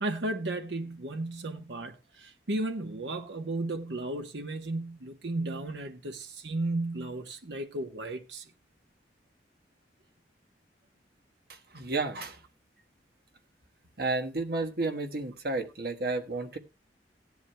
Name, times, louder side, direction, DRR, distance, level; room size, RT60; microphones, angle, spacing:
voice 1, 0.0-8.5, right 2 dB, 80° right, 1.1 m, -34 dB
voice 2, 11.7-12.4 14.0-16.6, right 3 dB, 60° right, 1.4 m, -31 dB
16.5 x 10.5 x 2.2 m
head